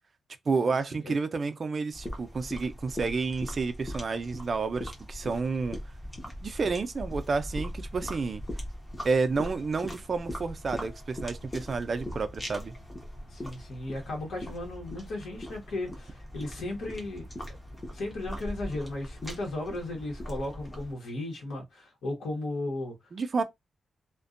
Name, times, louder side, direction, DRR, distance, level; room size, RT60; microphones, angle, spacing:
voice 1, 0.5-5.8 6.4-8.4 9.0-12.8 23.1-23.4, right 4 dB, 40° right, 0.4 m, -30 dB
sound 1, 1.9-20.9, equal, 15° left, 0.8 m, -40 dB
voice 2, 13.3-17.2 17.9-22.9, left 2 dB, 80° left, 1.1 m, -35 dB
2.5 x 2.2 x 2.4 m
wide cardioid pair, 160°, 0 cm